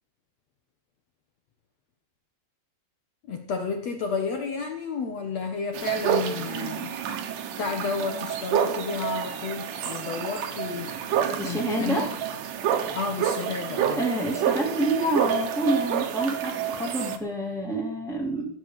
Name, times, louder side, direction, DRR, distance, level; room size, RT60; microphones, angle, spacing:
voice 1, 3.3-7.0 7.6-12.1 12.9-14.0, left 5 dB, 80° left, 5 dB, 1.5 m, -32 dB
sound 1, 5.7-17.2, right 9 dB, 60° right, 2.3 m, -29 dB
voice 2, 11.3-12.1 14.0-18.5, right 1 dB, ahead, -3 dB, 1.3 m, -27 dB
17.0 x 8.3 x 6.7 m, 0.64 s
omnidirectional pair, 5.3 m